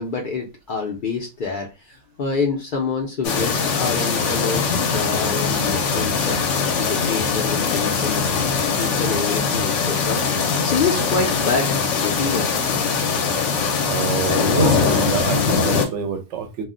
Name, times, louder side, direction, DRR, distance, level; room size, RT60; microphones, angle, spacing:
voice 1, 0.0-6.4 6.8-8.2 8.8-12.5, left 4 dB, 55° left, 1 dB, 0.6 m, -27 dB
sound 1, 3.2-15.9, left 5 dB, 75° left, 0.9 m, -21 dB
voice 2, 13.9-16.6, right 6 dB, 75° right, 6 dB, 0.9 m, -26 dB
2.3 x 2.1 x 3.7 m, 0.27 s
omnidirectional pair, 1.3 m